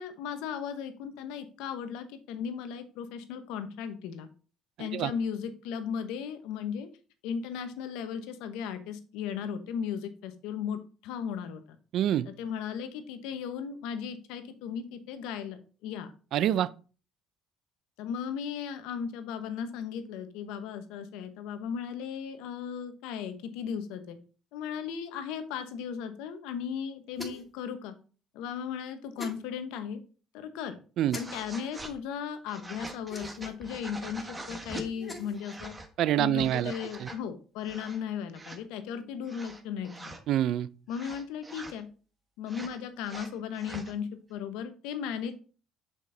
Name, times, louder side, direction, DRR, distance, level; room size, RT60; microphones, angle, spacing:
voice 1, 0.0-4.3 4.8-6.9 7.2-11.6 12.3-16.1 18.0-24.2 24.5-27.9 28.3-30.0 30.3-30.8 31.1-35.7 36.2-40.1 40.9-41.9 42.4-45.3, left 7 dB, 85° left, 0.9 m, -36 dB
voice 2, 4.8-5.1 11.9-12.3 16.3-16.7 31.0-31.2 36.0-36.7 37.0-37.1 40.3-40.7, right 11 dB, 65° right, 0.4 m, -26 dB
sound 1, 27.1-27.6 29.2-29.4 31.1-31.2 33.1-33.5 34.9-35.4, left 1 dB, 20° left, 2.2 m, -42 dB
sound 2, 31.1-32.0 32.5-34.9 35.3-35.9 36.3-37.2 37.6-38.0 38.3-38.6 39.3-40.2 40.9-41.8 42.5-43.9, right 2 dB, 20° right, 1.3 m, -44 dB
6.5 x 5.2 x 3.9 m
supercardioid pair, 85°, 0 cm